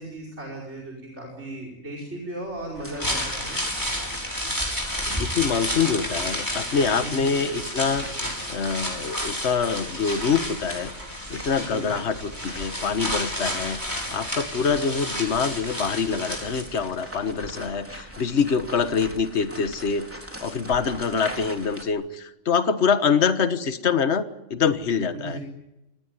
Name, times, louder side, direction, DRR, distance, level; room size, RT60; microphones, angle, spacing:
voice 1, 0.0-3.7 7.0-7.3 11.5-11.9 25.1-25.4, right 1 dB, 60° right, 1 dB, 5.5 m, -36 dB
sound 1, 2.7-21.8, equal, 10° right, 3.6 m, -41 dB
sound 2, 2.8-17.0 17.3-17.4, equal, 15° left, 6.5 m, -31 dB
voice 2, 5.1-10.9 11.3-20.1 20.4-25.4, left 6 dB, 60° left, 10 dB, 1.6 m, -25 dB
26.0 x 19.0 x 9.7 m, 0.94 s
omnidirectional pair, 1.3 m